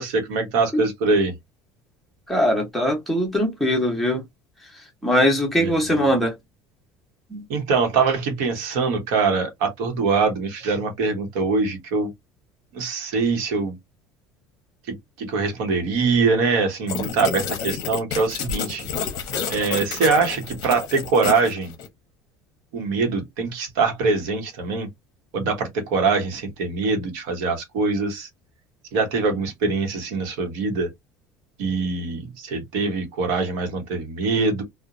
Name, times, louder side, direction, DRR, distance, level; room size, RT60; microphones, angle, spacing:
voice 1, 0.0-1.3 5.6-5.8 7.5-12.1 12.7-13.7 15.2-18.9 19.5-21.7 22.7-24.9 25.3-28.3 28.9-30.9 31.6-34.6, right 4 dB, 75° right, 0.9 m, -23 dB
voice 2, 2.3-4.2 5.0-6.3 7.3-7.4, equal, ahead, 0.7 m, -21 dB
sound 1, 16.9-21.9, left 7 dB, 45° left, 0.7 m, -30 dB
2.8 x 2.1 x 2.4 m
cardioid pair, 175°, 10 cm